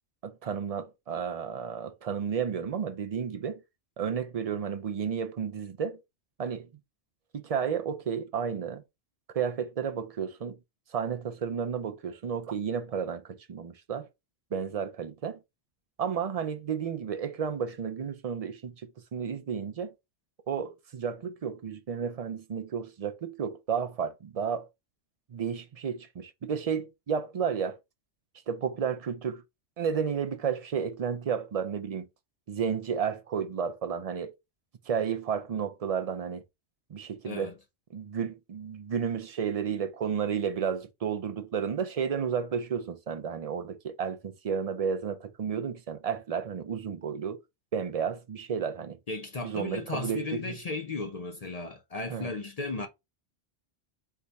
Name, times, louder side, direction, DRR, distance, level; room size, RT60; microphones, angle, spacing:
voice 1, 0.2-3.6 4.0-6.0 6.4-6.7 7.3-8.8 9.3-10.6 10.9-14.1 14.5-15.4 16.0-19.9 20.5-24.7 25.3-27.8 28.5-29.4 29.8-32.1 32.5-34.3 34.9-36.4 36.9-37.5 37.9-47.4 47.7-49.0 49.4-50.5 52.1-52.3, right 7 dB, 50° right, 0.4 m, -32 dB
voice 2, 49.1-52.9, left 3 dB, 45° left, 0.5 m, -35 dB
4.6 x 2.3 x 4.0 m
omnidirectional pair, 1.2 m